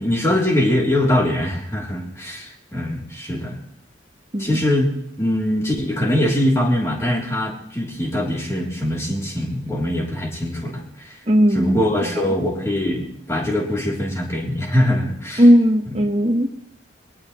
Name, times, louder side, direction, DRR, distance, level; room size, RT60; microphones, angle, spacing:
voice 1, 0.0-3.6 4.4-4.9 5.2-11.2 11.5-15.4, left 1 dB, 15° left, -2 dB, 3.3 m, -22 dB
voice 2, 11.3-12.1 15.4-16.5, equal, 35° right, 2 dB, 1.2 m, -16 dB
20.5 x 18.5 x 3.2 m, 0.74 s
head